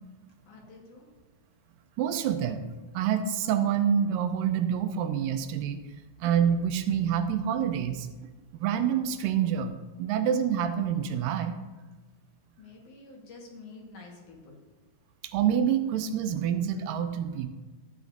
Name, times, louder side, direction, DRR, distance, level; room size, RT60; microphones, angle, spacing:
voice 1, 0.5-1.1 12.6-14.6, left 3 dB, 65° left, 0 dB, 2.8 m, -48 dB
voice 2, 2.0-2.6 2.9-5.8 6.2-8.1 8.5-11.6 15.2-17.5, right 8 dB, 85° right, 8 dB, 2.3 m, -27 dB
12.5 x 8.4 x 2.6 m, 1.3 s
omnidirectional pair, 4.0 m